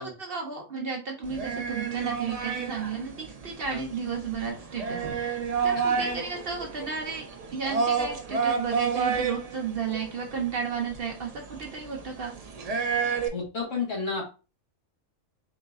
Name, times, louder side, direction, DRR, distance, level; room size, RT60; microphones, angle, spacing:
voice 1, 0.0-5.3 5.6-7.2 7.5-12.3, right 5 dB, 55° right, 1 dB, 0.8 m, -33 dB
sound 1, 1.2-13.3, right 6 dB, 70° right, 0.3 m, -30 dB
voice 2, 13.3-14.3, left 4 dB, 65° left, -2 dB, 1.9 m, -31 dB
3.9 x 3.7 x 2.3 m, 0.32 s
omnidirectional pair, 1.4 m